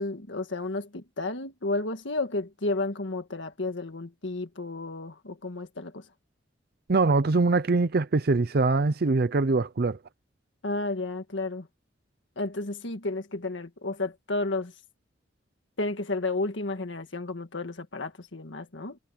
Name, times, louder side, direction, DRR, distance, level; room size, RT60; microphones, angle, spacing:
voice 1, 0.0-6.1 10.6-11.7 12.4-14.7 15.8-19.0, left 2 dB, 85° left, 1.7 m, -32 dB
voice 2, 6.9-10.0, right 3 dB, 55° right, 0.6 m, -23 dB
head